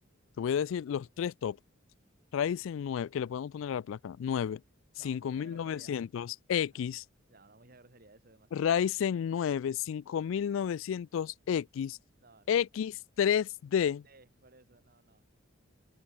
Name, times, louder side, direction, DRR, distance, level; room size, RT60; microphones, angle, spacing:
voice 1, 0.4-1.6 2.3-4.6 5.0-7.0 8.5-12.0 12.5-14.0, left 8 dB, 70° left, 0.3 m, -31 dB
voice 2, 5.0-6.0 6.7-6.8 7.3-8.7 12.2-12.8 14.0-15.2, right 3 dB, 45° right, 2.5 m, -59 dB
head